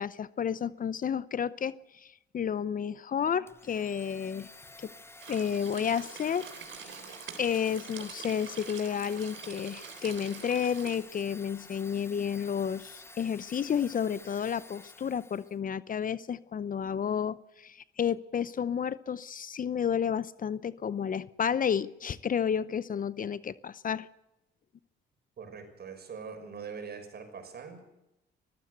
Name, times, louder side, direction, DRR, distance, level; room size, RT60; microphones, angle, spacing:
voice 1, 0.0-4.5 4.8-4.9 5.3-6.5 7.4-24.1, left 8 dB, 45° left, 18 dB, 0.7 m, -31 dB
Domestic sounds home sounds, 3.5-15.6, left 2 dB, 10° left, 1.0 m, -51 dB
sound 1, 5.2-11.0, right 8 dB, 75° right, 3.6 m, -46 dB
voice 2, 25.4-27.8, right 6 dB, 55° right, 6 dB, 6.2 m, -42 dB
23.0 x 15.0 x 8.0 m, 0.91 s
cardioid pair, 90°, 20 cm